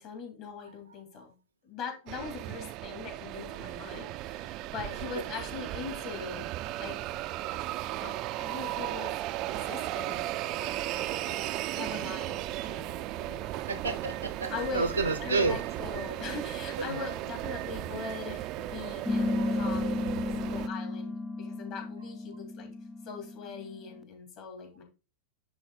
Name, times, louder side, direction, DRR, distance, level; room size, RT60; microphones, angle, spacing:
voice 1, 0.0-1.3 1.6-6.4 6.8-7.2 8.0-9.1 9.5-10.3 10.6-11.4 11.7-13.6 14.5-14.9 15.2-20.0 20.5-22.7 23.0-24.8, left 5 dB, 40° left, 3 dB, 3.1 m, -41 dB
Zagreb Train Arriving, 2.1-20.7, right 15 dB, 40° right, 0.5 m, -36 dB
voice 2, 13.7-15.5 16.9-17.0, right 3 dB, 85° right, 8 dB, 0.8 m, -30 dB
sound 1, 19.1-24.0, left 2 dB, 15° left, 0.5 m, -33 dB
10.5 x 3.9 x 3.8 m, 0.31 s
figure-of-eight pair, 90°, 0 cm